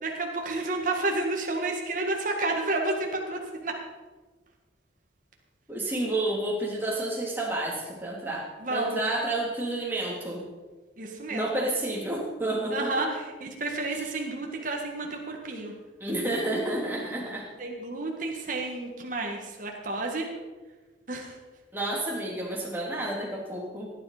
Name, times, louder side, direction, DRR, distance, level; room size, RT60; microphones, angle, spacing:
voice 1, 0.0-3.8 8.6-9.0 11.0-11.7 12.7-15.7 17.6-20.3 21.1-21.4, right 2 dB, 45° right, 1 dB, 1.8 m, -31 dB
voice 2, 5.7-10.4 11.3-13.1 16.0-17.5 21.7-23.9, right 1 dB, 10° right, -3 dB, 3.2 m, -30 dB
17.0 x 10.5 x 5.0 m, 1.3 s
head